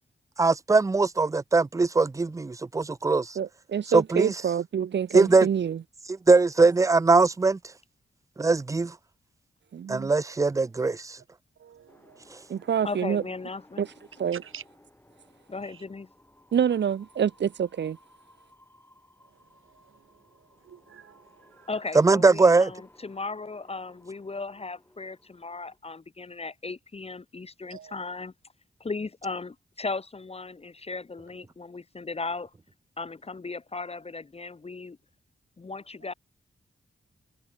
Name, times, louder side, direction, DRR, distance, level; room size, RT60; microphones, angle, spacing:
voice 1, 0.4-3.3 3.9-4.3 5.1-5.5 6.3-7.6 8.4-8.9 9.9-11.2 22.0-22.7, right 3 dB, 15° right, 0.4 m, -21 dB
voice 2, 3.4-5.8 9.7-10.1 12.5-13.2 13.8-13.9 14.2-14.4 16.5-18.0, right 8 dB, 60° right, 0.6 m, -27 dB
voice 3, 11.6-12.2 12.5-12.6 14.4-14.6 20.6-21.7 27.7-27.9, right 8 dB, 90° right, 1.2 m, -48 dB
sound 1, 11.9-25.8, left 1 dB, 10° left, 6.4 m, -59 dB
voice 4, 12.8-13.9 15.5-16.1 21.7-28.3 28.8-32.5 33.0-35.0 35.6-36.1, left 3 dB, 30° left, 0.8 m, -36 dB
wide cardioid pair, 100°, 20 cm